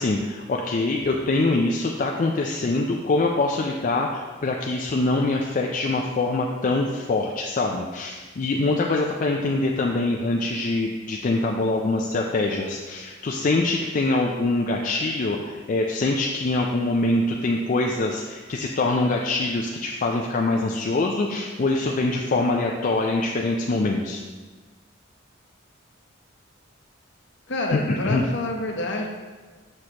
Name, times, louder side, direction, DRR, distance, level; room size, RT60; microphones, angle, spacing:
voice 1, 0.0-24.2 27.7-28.2, left 2 dB, 40° left, 0 dB, 0.4 m, -24 dB
voice 2, 27.5-29.1, left 2 dB, 60° left, 1 dB, 0.9 m, -28 dB
6.4 x 6.2 x 2.9 m, 1.4 s
head